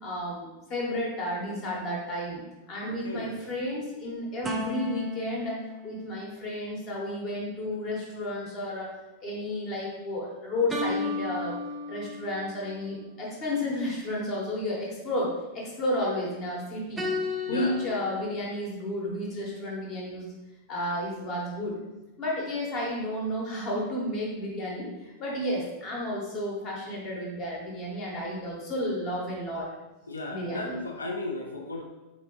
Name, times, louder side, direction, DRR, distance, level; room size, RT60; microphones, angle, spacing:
voice 1, 0.0-2.4 2.7-5.6 5.8-8.9 9.2-11.6 11.9-17.1 17.5-20.3 20.7-21.8 22.2-29.7 30.3-30.8, left 1 dB, 35° left, -2 dB, 1.2 m, -32 dB
voice 2, 2.9-3.4 17.5-17.8 30.1-31.8, left 2 dB, 75° left, 1 dB, 0.4 m, -35 dB
sound 1, 4.4-7.0 10.7-12.5 17.0-18.4, left 3 dB, 10° right, 0.4 m, -34 dB
4.2 x 2.7 x 3.0 m, 1.0 s
figure-of-eight pair, 90°, 0 cm